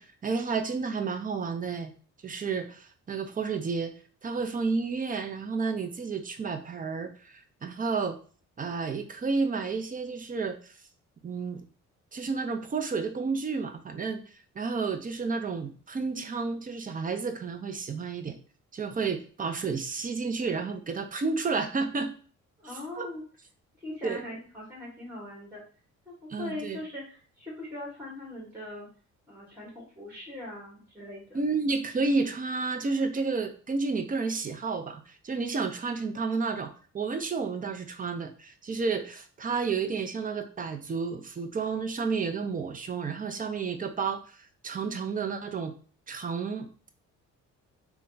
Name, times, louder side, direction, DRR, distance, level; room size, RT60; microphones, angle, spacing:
voice 1, 0.0-1.9 2.2-3.9 4.2-8.2 8.6-10.7 11.2-11.6 12.1-14.2 14.5-18.4 18.7-22.1 23.0-23.1 24.0-24.2 26.3-26.8 31.3-45.7 46.1-46.7, right 4 dB, 30° right, 7 dB, 0.6 m, -31 dB
voice 2, 22.6-23.2 23.8-25.6 26.1-28.9 29.3-31.4, left 2 dB, 5° right, -5 dB, 1.9 m, -41 dB
3.4 x 2.3 x 4.0 m, 0.40 s
cardioid pair, 90°, 30 cm